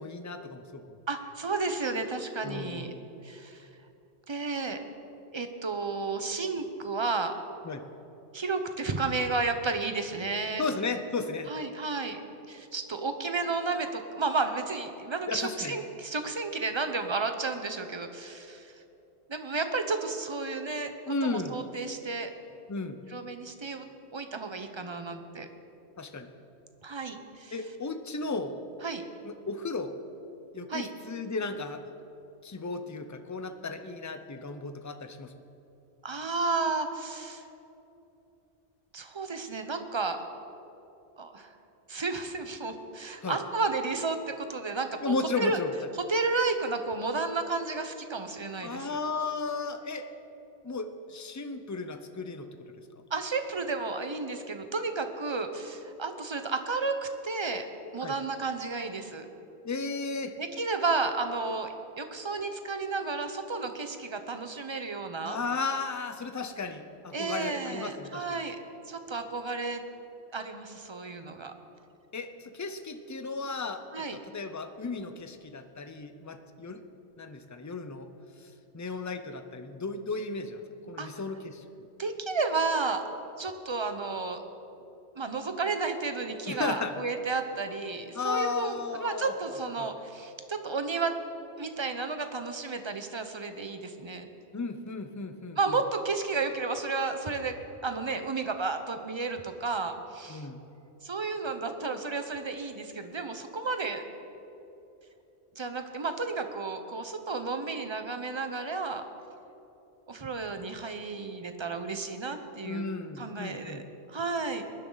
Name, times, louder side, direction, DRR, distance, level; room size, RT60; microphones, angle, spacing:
voice 1, 0.0-1.0 2.4-3.0 7.6-7.8 10.6-11.5 15.3-15.8 21.1-21.6 22.7-23.0 26.0-26.3 27.5-28.6 29.2-29.9 30.5-31.8 32.4-35.3 43.2-43.4 45.0-45.7 48.6-50.1 50.6-52.5 58.0-58.2 59.6-60.3 65.2-68.4 72.1-76.8 77.2-78.1 78.4-80.6 80.9-81.6 86.5-87.0 88.1-89.3 89.8-89.9 94.5-95.6 100.3-100.6 112.6-113.8, left 3 dB, 20° left, 8 dB, 0.5 m, -34 dB
voice 2, 1.1-2.9 3.2-3.7 4.3-4.8 5.3-7.3 8.3-10.6 11.5-12.2 12.5-18.7 19.3-20.9 21.2-22.3 23.1-23.9 24.1-25.5 26.8-27.5 28.8-29.0 30.7-30.9 36.0-37.5 38.9-40.2 41.2-41.5 41.9-45.6 46.1-49.0 53.1-57.6 57.9-59.3 60.4-65.4 67.1-68.6 68.9-69.8 70.3-71.5 73.9-74.2 81.0-81.1 82.0-83.0 83.4-84.4 85.2-91.2 91.6-94.3 95.6-97.6 97.8-100.5 101.0-104.0 105.6-109.0 110.1-112.8 113.2-113.8 114.1-114.6, right 3 dB, 30° right, 7 dB, 0.8 m, -32 dB
20.0 x 11.0 x 4.0 m, 3.0 s
omnidirectional pair, 1.1 m